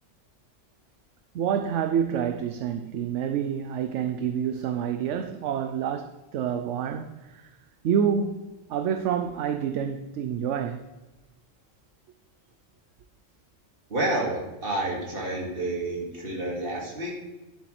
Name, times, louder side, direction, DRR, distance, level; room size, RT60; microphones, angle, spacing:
voice 1, 1.3-7.4 7.8-10.8, right 8 dB, 75° right, 0.9 m, -28 dB
voice 2, 13.9-17.2, right 2 dB, 45° right, 2.3 m, -29 dB
11.0 x 7.8 x 3.2 m
omnidirectional pair, 1.3 m